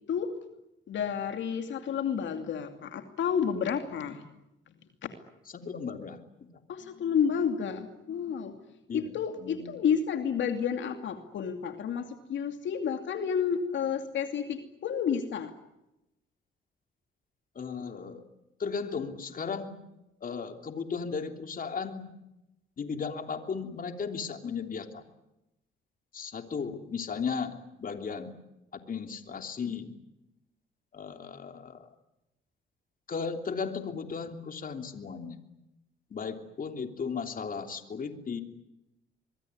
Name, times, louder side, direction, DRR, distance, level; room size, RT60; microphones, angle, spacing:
voice 1, 0.9-4.2 4.7-4.8 5.0-5.1 6.7-8.5 8.9-15.5, left 7 dB, 70° left, 6 dB, 2.7 m, -30 dB
voice 2, 5.5-6.2 8.9-9.0 9.4-9.6 17.5-18.2 18.6-19.7 20.2-22.1 22.8-25.0 26.1-28.3 28.9-29.9 30.9-31.8 33.1-35.4 36.1-38.4, left 5 dB, 45° left, 6 dB, 3.2 m, -35 dB
25.0 x 22.0 x 9.6 m, 0.92 s
cardioid pair, 90°, 20 cm